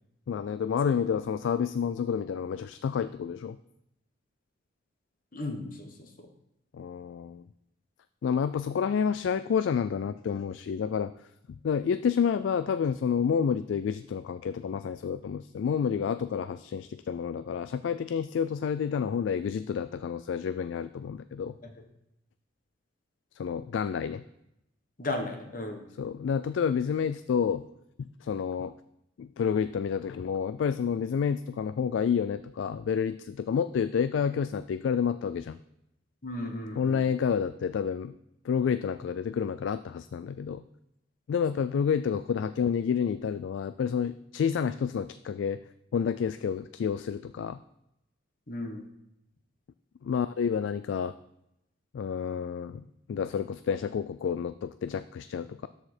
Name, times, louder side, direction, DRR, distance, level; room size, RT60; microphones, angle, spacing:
voice 1, 0.3-3.6 6.7-7.4 8.2-11.1 11.6-21.6 23.4-24.2 26.0-27.6 28.0-28.7 29.2-35.6 36.8-38.1 38.4-40.6 41.3-45.6 45.9-47.6 50.0-51.1 51.9-52.8 53.1-55.7, left 7 dB, 75° left, 12 dB, 0.3 m, -29 dB
voice 2, 5.3-6.3 21.6-21.7 25.0-25.9 36.2-37.2 48.5-48.8, left 2 dB, 45° left, 4 dB, 1.2 m, -36 dB
13.0 x 4.9 x 4.3 m, 0.84 s
head